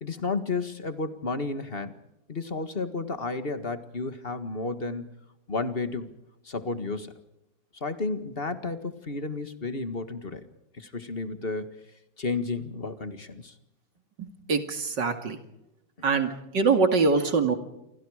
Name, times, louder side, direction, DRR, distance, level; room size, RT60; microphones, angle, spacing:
voice 1, 0.0-1.9 2.3-5.1 5.5-6.1 6.4-7.1 7.7-10.5 10.7-11.8 12.2-13.5 16.0-16.1, left 3 dB, 30° left, 11 dB, 1.8 m, -32 dB
voice 2, 14.2-15.4 16.0-17.6, right 4 dB, 65° right, 8 dB, 3.0 m, -24 dB
28.5 x 25.0 x 5.0 m, 0.86 s
omnidirectional pair, 2.1 m